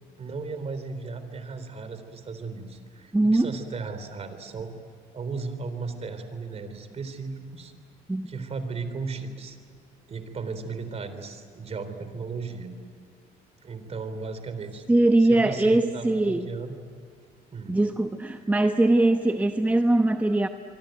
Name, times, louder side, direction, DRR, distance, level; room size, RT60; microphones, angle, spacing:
voice 1, 0.2-4.7 5.1-7.7 8.3-9.6 10.1-12.7 13.6-14.8 15.2-16.8 17.5-17.7, right 4 dB, 40° right, 10 dB, 3.7 m, -36 dB
voice 2, 3.1-3.5 8.1-8.3 14.9-16.5 17.7-20.5, right 2 dB, 10° right, 6 dB, 0.9 m, -21 dB
25.0 x 24.5 x 9.2 m, 2.3 s
cardioid pair, 110°, 17 cm